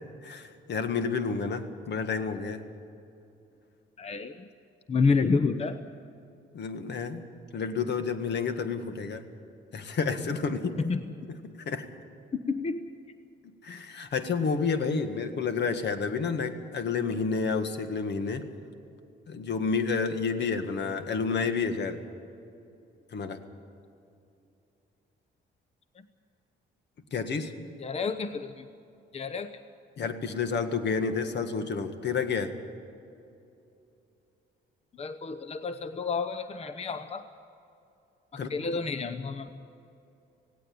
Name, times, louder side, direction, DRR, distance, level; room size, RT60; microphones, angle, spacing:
voice 1, 0.2-2.6 6.5-7.2 7.5-9.2 9.7-10.8 11.6-11.9 13.6-18.4 19.3-22.0 23.1-23.4 27.1-27.5 30.0-32.5 38.4-38.5, left 5 dB, 60° left, 8 dB, 1.8 m, -30 dB
voice 2, 4.0-4.5 4.9-5.8 10.8-11.0 12.5-12.8 27.8-28.7 29.1-29.5 35.0-37.2 38.3-39.6, left 4 dB, 30° left, 10 dB, 0.8 m, -29 dB
17.5 x 17.0 x 8.8 m, 2.7 s
cardioid pair, 90°, 20 cm